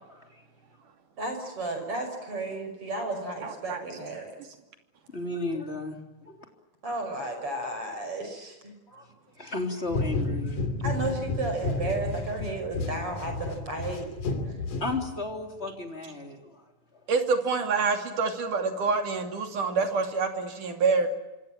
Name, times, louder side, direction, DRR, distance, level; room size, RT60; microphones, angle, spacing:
voice 1, 0.1-0.4 5.1-6.0 6.3-6.4 8.9-9.1 9.4-10.6 14.8-16.6, left 2 dB, 20° left, 4 dB, 3.7 m, -34 dB
voice 2, 1.2-4.3 6.8-8.7 10.8-14.1, right 2 dB, 45° right, 6 dB, 6.6 m, -33 dB
voice 3, 3.4-3.8 17.1-21.1, right 4 dB, 85° right, 5 dB, 4.3 m, -26 dB
sound 1, 9.9-15.4, left 3 dB, 90° left, 4.3 m, -31 dB
26.5 x 26.0 x 7.6 m, 1.1 s
omnidirectional pair, 3.5 m